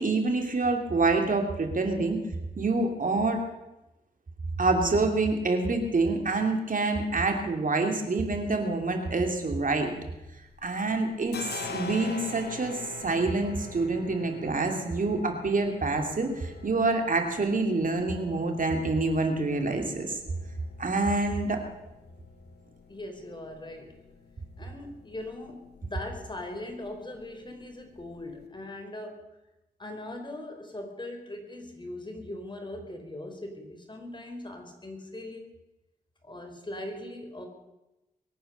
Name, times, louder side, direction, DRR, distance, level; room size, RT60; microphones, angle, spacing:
voice 1, 0.0-2.2 2.6-3.4 4.6-9.9 10.6-20.2 20.8-21.6, right 3 dB, 55° right, 4 dB, 2.9 m, -27 dB
sound 1, 9.7-10.7 10.9-28.4, left 5 dB, 85° left, 2.1 m, -46 dB
voice 2, 22.9-24.0 24.6-29.3 29.8-35.5 36.2-37.5, left 1 dB, 30° left, 4 dB, 4.2 m, -40 dB
22.5 x 9.3 x 6.8 m, 0.97 s
cardioid pair, 60°, 17 cm